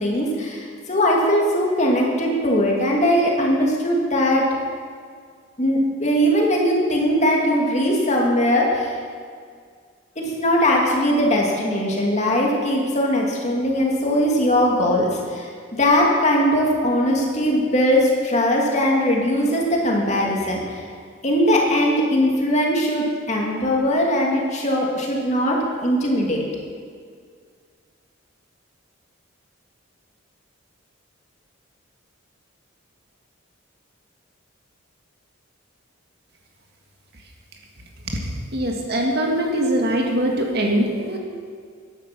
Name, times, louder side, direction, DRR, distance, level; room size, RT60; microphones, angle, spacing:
voice 1, 0.0-4.5 5.6-9.0 10.2-15.5 15.8-20.8 21.2-26.4, equal, 35° left, -1 dB, 2.5 m, -20 dB
voice 2, 38.5-41.2, right 1 dB, 50° right, 1 dB, 2.0 m, -22 dB
14.5 x 11.0 x 6.0 m, 2.1 s
head